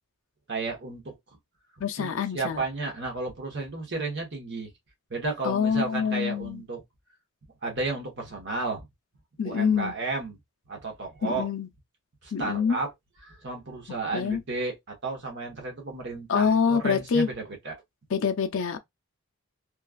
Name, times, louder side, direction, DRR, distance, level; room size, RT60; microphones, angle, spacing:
voice 1, 0.5-1.2 2.0-2.1 2.3-4.7 5.1-6.8 7.6-8.9 9.4-10.4 10.7-11.5 12.2-12.9 13.2-17.7, right 3 dB, 50° right, 1.1 m, -33 dB
voice 2, 1.8-2.6 5.4-6.6 9.4-9.9 11.2-11.7 12.3-12.8 14.1-14.4 16.3-17.3 18.1-18.8, left 6 dB, 60° left, 0.5 m, -25 dB
3.1 x 2.3 x 2.3 m
head